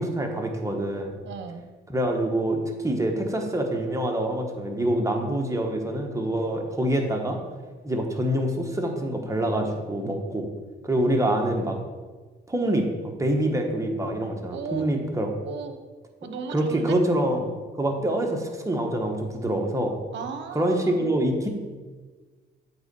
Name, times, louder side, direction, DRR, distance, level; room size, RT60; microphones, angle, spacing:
voice 1, 0.0-1.1 1.9-7.4 7.8-10.5 10.8-11.8 12.5-12.9 13.2-15.3 16.5-20.0 20.5-21.5, right 1 dB, 15° right, 2 dB, 1.2 m, -25 dB
voice 2, 1.2-1.6 14.5-14.9 15.4-15.7 16.2-16.9 18.0-18.2 20.1-21.1, right 5 dB, 65° right, 7 dB, 0.9 m, -36 dB
8.0 x 3.9 x 5.3 m, 1.4 s
cardioid pair, 90°, 20 cm